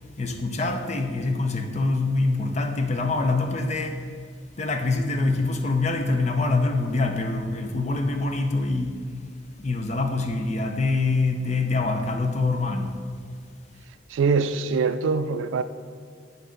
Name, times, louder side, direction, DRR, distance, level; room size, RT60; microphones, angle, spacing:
voice 1, 0.2-4.0 4.6-9.0 9.6-13.0, left 3 dB, 35° left, 0.5 m, -25 dB
voice 2, 14.1-15.6, right 5 dB, 85° right, 0.3 m, -23 dB
8.5 x 4.0 x 3.9 m
head